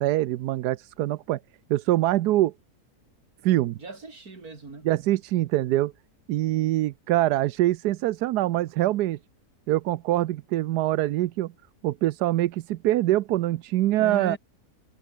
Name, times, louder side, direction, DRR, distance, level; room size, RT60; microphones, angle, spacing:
voice 1, 0.0-1.4 1.7-2.5 3.4-3.8 4.8-5.9 6.3-9.2 9.7-11.5 11.8-14.4, right 15 dB, 85° right, 1.2 m, -24 dB
voice 2, 3.8-4.9 14.0-14.4, right 3 dB, 65° right, 4.1 m, -36 dB
omnidirectional pair, 1.7 m